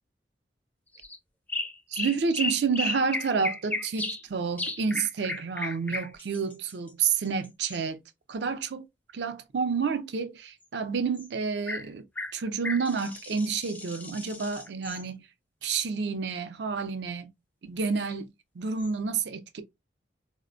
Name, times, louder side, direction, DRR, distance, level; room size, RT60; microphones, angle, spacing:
sound 1, 0.9-1.2 1.5-4.2 4.6-7.8 11.1-11.3 11.7-11.9 12.2-15.0 18.0-18.1 18.8-18.9, left 2 dB, 10° left, 0.4 m, -34 dB
voice 1, 1.9-8.0 8.3-8.9 9.1-12.0 12.3-15.3 15.6-17.3 17.6-18.3 18.6-19.6, right 5 dB, 65° right, 0.4 m, -29 dB
4.1 x 2.1 x 2.4 m
head